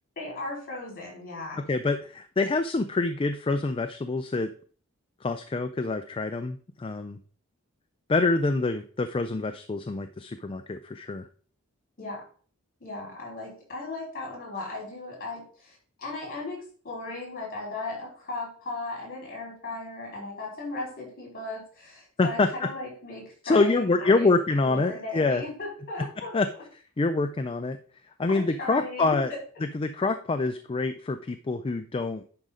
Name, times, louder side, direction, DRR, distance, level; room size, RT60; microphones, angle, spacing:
voice 1, 0.2-1.6 12.0-12.2 12.8-24.3 24.6-26.4 28.3-29.4, left 3 dB, 45° left, -2 dB, 4.5 m, -37 dB
voice 2, 1.7-4.5 5.2-7.2 8.1-11.3 22.2-22.7 23.4-25.4 26.3-26.5 27.0-27.8 28.2-29.3 29.6-32.2, left 3 dB, 25° left, 9 dB, 0.4 m, -26 dB
10.5 x 5.0 x 3.8 m, 0.44 s
head